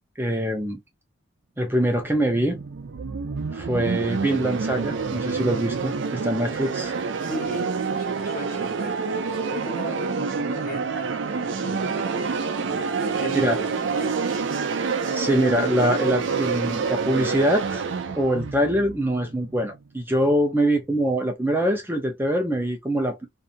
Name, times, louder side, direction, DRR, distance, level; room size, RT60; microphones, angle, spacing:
voice 1, 0.2-0.8 1.6-2.6 3.5-5.9 6.2-6.9 13.3-13.5 15.1-17.8 18.2-23.3, right 1 dB, 10° right, 0.6 m, -23 dB
sound 1, 2.0-19.8, right 5 dB, 80° right, 0.5 m, -28 dB
voice 2, 7.2-14.3 20.1-20.3, left 1 dB, 50° left, 1.2 m, -38 dB
2.7 x 2.4 x 2.5 m
head